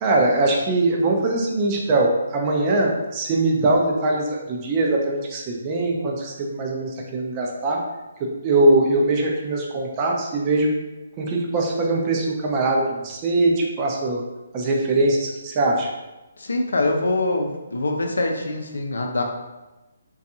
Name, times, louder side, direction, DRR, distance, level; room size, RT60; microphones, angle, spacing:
voice 1, 0.0-7.8 8.2-10.7 11.2-14.2 14.5-15.9, right 2 dB, 25° right, -1 dB, 0.4 m, -21 dB
voice 2, 16.4-19.2, left 2 dB, 85° left, 3 dB, 0.4 m, -24 dB
2.6 x 2.3 x 2.7 m, 1.1 s
hypercardioid pair, 155°, 0 cm